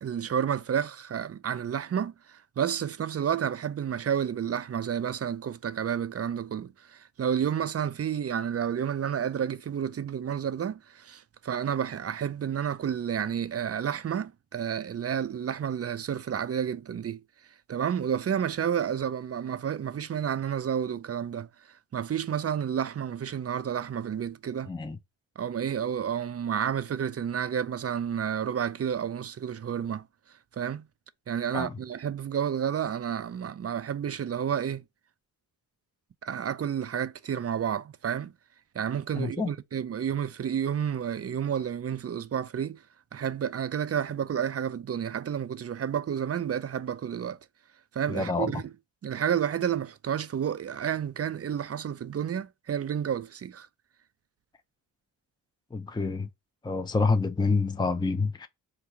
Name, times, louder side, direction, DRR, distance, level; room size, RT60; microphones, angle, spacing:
voice 1, 0.0-17.2 17.7-21.5 21.9-24.7 25.4-30.0 30.5-30.8 31.3-34.8 36.2-38.3 38.7-42.8 43.1-47.4 47.9-48.6 49.0-53.7, right 8 dB, 35° right, 0.5 m, -30 dB
voice 2, 24.7-25.0 31.5-31.8 39.1-39.5 48.1-48.6 55.7-56.3 56.6-58.5, left 3 dB, 10° left, 0.6 m, -27 dB
3.9 x 2.3 x 4.3 m
supercardioid pair, 40°, 44 cm